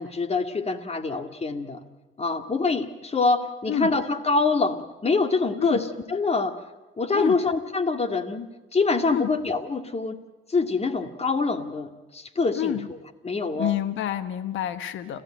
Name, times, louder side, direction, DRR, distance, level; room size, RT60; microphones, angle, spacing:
voice 1, 0.0-1.8 2.2-6.6 7.0-8.5 8.7-10.2 10.5-13.0 13.2-13.8, left 3 dB, 30° left, 8 dB, 2.3 m, -25 dB
voice 2, 12.6-12.9 13.5-15.2, left 11 dB, 75° left, 12 dB, 1.3 m, -28 dB
29.5 x 14.5 x 8.9 m, 1.2 s
cardioid pair, 90°, 20 cm